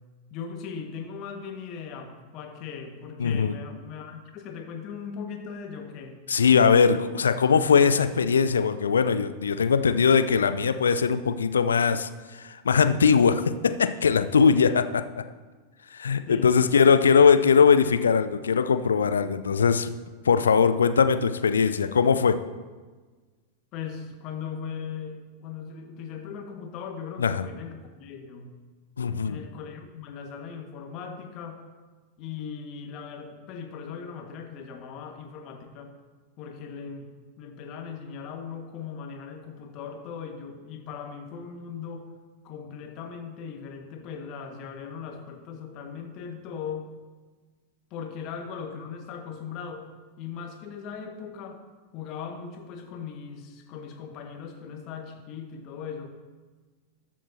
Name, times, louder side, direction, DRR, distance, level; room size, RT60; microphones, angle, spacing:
voice 1, 0.3-6.2 16.3-16.8 23.7-28.5 29.2-31.6 32.2-35.9 36.4-37.1 37.4-42.1 42.4-46.9 47.9-49.9 50.2-51.6 51.9-56.1, left 6 dB, 40° left, 4 dB, 1.6 m, -39 dB
voice 2, 3.2-3.5 6.3-15.2 15.9-19.9 20.2-22.4 27.2-27.5 29.0-29.4, left 6 dB, 70° left, 11 dB, 0.5 m, -21 dB
20.5 x 7.4 x 2.8 m, 1.4 s
figure-of-eight pair, 90°, 0 cm